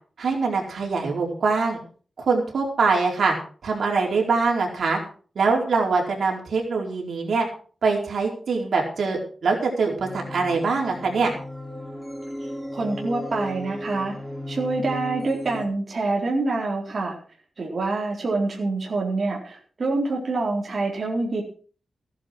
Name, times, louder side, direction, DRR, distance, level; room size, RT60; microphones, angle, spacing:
voice 1, 0.2-1.8 2.2-3.3 3.6-5.0 5.3-7.5 7.8-11.3, right 4 dB, 75° right, 0 dB, 4.6 m, -23 dB
sound 1, 10.0-15.7, equal, ahead, 3.5 m, -35 dB
voice 2, 12.7-14.1 14.5-17.2 17.6-21.4, right 3 dB, 45° right, -2 dB, 4.1 m, -26 dB
16.0 x 11.0 x 4.8 m, 0.41 s
wide cardioid pair, 135°, 0 cm